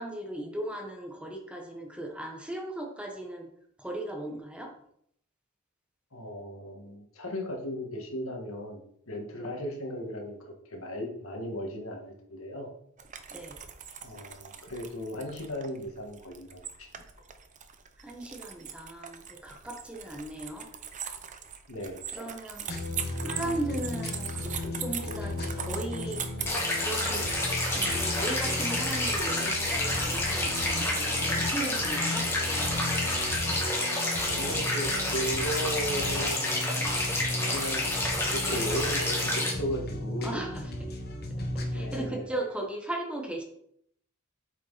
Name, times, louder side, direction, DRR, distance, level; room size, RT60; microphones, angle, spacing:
voice 1, 0.0-3.5 3.8-4.7 9.4-9.5 13.3-13.6 18.0-20.7 22.1-22.7 23.2-26.2 26.8-27.3 27.7-32.3 40.1-40.7 41.7-43.4, right 1 dB, 5° right, 1 dB, 1.3 m, -37 dB
voice 2, 6.1-8.8 9.1-10.4 10.7-12.7 14.0-16.9 21.7-22.0 34.2-36.9 37.4-37.8 38.3-40.5 41.7-42.3, equal, 75° left, 2 dB, 1.9 m, -36 dB
sound 1, 13.0-31.7, right 8 dB, 35° right, 0.8 m, -41 dB
sound 2, 22.7-42.1, left 1 dB, 50° left, 1.4 m, -35 dB
sound 3, 26.5-39.5, left 1 dB, 10° left, 2.4 m, -29 dB
8.3 x 6.1 x 4.2 m, 0.69 s
head